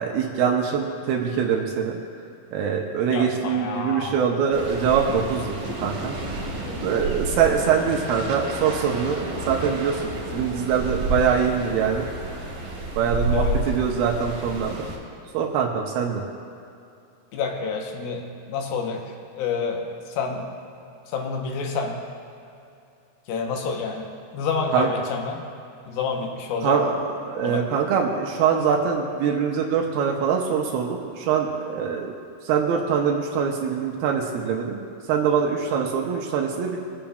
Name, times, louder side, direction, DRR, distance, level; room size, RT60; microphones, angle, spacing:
voice 1, 0.0-2.0 2.5-5.6 5.8-6.2 6.8-12.1 13.0-14.8 15.3-16.2 24.7-24.9 26.6-27.0 27.2-32.1 32.5-36.8, right 7 dB, 80° right, 0 dB, 2.6 m, -23 dB
voice 2, 3.1-4.3 6.7-7.0 13.3-13.7 17.3-20.5 21.1-22.1 23.3-25.5 25.9-26.8 27.4-27.8, left 5 dB, 80° left, 2 dB, 2.7 m, -29 dB
sound 1, 4.5-15.0, right 2 dB, 45° right, 1.5 m, -30 dB
22.0 x 8.7 x 2.3 m, 2.6 s
omnidirectional pair, 4.3 m